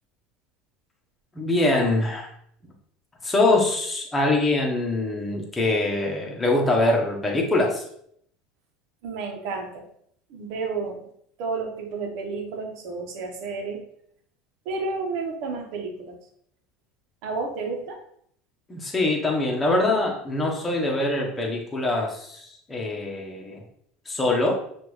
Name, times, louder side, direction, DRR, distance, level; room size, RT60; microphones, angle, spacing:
voice 1, 1.3-2.3 3.2-7.8 18.7-23.6 24.1-24.5, left 2 dB, 15° left, 0 dB, 1.0 m, -23 dB
voice 2, 9.0-9.8 10.3-11.0 11.4-13.8 14.6-16.2 17.2-18.0, right 4 dB, 65° right, 2 dB, 1.1 m, -31 dB
5.9 x 2.6 x 3.1 m, 0.68 s
supercardioid pair, 125°, 0 cm